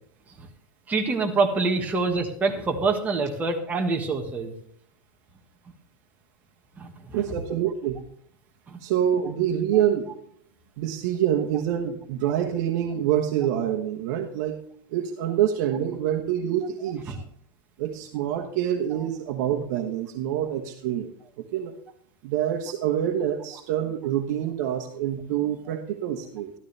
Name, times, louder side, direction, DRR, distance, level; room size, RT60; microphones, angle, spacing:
voice 1, 0.9-4.5 6.8-7.2 8.7-8.8 17.1-17.2, right 3 dB, 15° right, 2 dB, 1.5 m, -26 dB
voice 2, 7.1-8.0 8.8-10.1 10.8-14.6 14.9-17.2 17.8-21.1 21.5-21.8 22.2-26.5, right 10 dB, 60° right, 3 dB, 1.2 m, -26 dB
13.5 x 12.5 x 3.4 m, 0.64 s
supercardioid pair, 155°, 11 cm